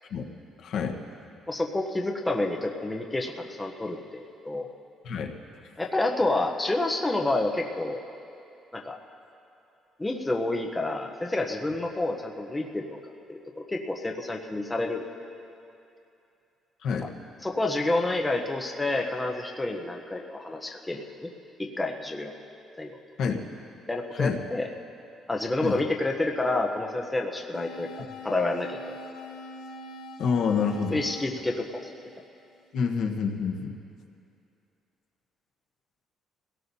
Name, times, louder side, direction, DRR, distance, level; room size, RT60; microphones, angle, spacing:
voice 1, 0.6-1.0 5.0-5.3 16.8-17.1 23.2-23.4 24.1-24.4 25.6-25.8 30.2-31.0 32.7-33.8, left 6 dB, 60° left, 2 dB, 1.2 m, -27 dB
voice 2, 1.5-4.7 5.8-8.0 8.7-9.0 10.0-13.0 13.3-15.1 17.4-21.3 21.6-22.3 22.8-23.0 23.9-24.7 25.3-27.9 28.2-28.8 30.9-31.9, left 2 dB, 10° left, 1 dB, 0.8 m, -29 dB
sound 1, 27.5-32.6, left 1 dB, 85° left, 0.8 m, -43 dB
24.0 x 17.5 x 2.8 m, 2.7 s
cardioid pair, 165°, 0 cm